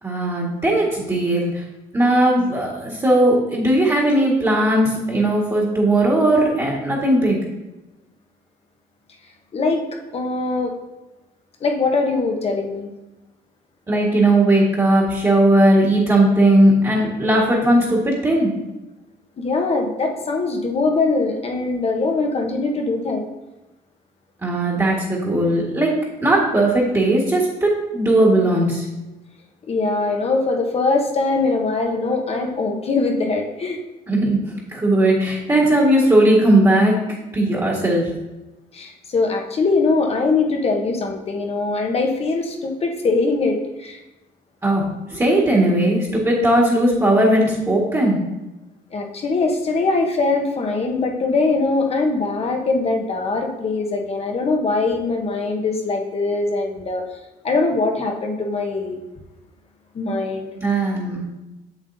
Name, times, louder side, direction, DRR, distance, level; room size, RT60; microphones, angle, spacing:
voice 1, 0.0-1.6 1.9-7.4 13.9-18.5 24.4-25.9 26.2-28.8 34.1-34.4 34.7-37.0 37.3-38.1 44.6-48.2 60.5-61.3, right 1 dB, 20° right, -5 dB, 1.7 m, -17 dB
voice 2, 9.5-10.7 11.6-12.9 19.4-23.2 29.7-33.8 38.7-44.0 48.9-57.0 57.4-59.0 59.9-60.5, left 3 dB, 35° left, 3 dB, 1.0 m, -22 dB
7.3 x 7.2 x 2.7 m, 1.0 s
cardioid pair, 110°, 17 cm